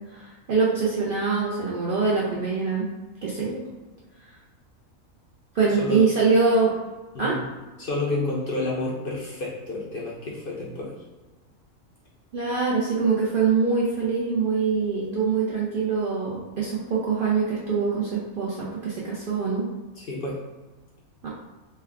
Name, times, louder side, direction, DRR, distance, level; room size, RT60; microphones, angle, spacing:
voice 1, 0.1-2.9 3.2-3.6 5.5-6.8 7.2-7.4 12.3-19.7 21.2-21.3, right 4 dB, 70° right, -6 dB, 0.5 m, -24 dB
voice 2, 5.7-6.0 7.1-7.4 7.8-11.0 20.0-20.4, left 2 dB, 60° left, -4 dB, 0.6 m, -30 dB
3.2 x 2.2 x 3.4 m, 1.2 s
omnidirectional pair, 1.5 m